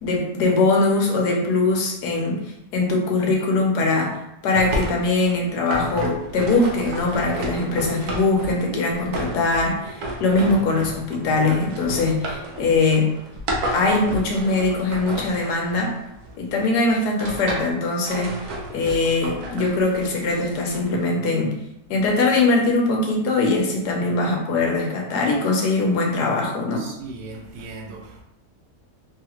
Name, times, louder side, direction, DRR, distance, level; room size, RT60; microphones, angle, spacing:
voice 1, 0.0-2.4 2.7-13.1 13.7-15.9 16.4-18.3 18.7-21.6 21.9-26.9, left 3 dB, 90° left, 0 dB, 1.3 m, -21 dB
sound 1, 4.5-16.4 16.9-17.7 18.1-21.1, right 1 dB, 70° right, 0.9 m, -32 dB
voice 2, 26.8-28.2, right 3 dB, 85° right, 1 dB, 1.2 m, -38 dB
3.1 x 2.4 x 2.9 m, 0.84 s
omnidirectional pair, 1.7 m